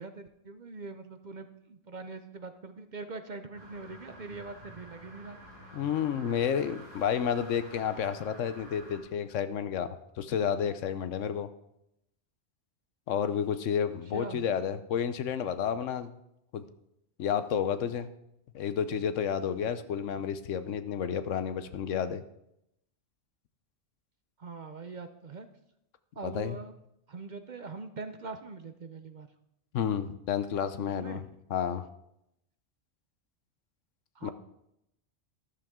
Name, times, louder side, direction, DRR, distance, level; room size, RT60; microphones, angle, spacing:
voice 1, 0.0-5.4 14.1-14.4 24.4-25.5 26.2-26.7 27.1-29.3 30.8-31.2 34.1-34.3, right 3 dB, 45° right, 9 dB, 0.7 m, -42 dB
sound 1, 3.5-9.0, right 1 dB, 35° left, 5.0 m, -50 dB
voice 2, 5.7-11.5 13.1-16.1 16.5-16.7 17.2-18.1 18.5-22.2 26.2-26.6 29.7-31.9 34.2-34.3, left 8 dB, 80° left, 12 dB, 1.1 m, -31 dB
13.0 x 12.0 x 3.7 m, 0.81 s
omnidirectional pair, 1.3 m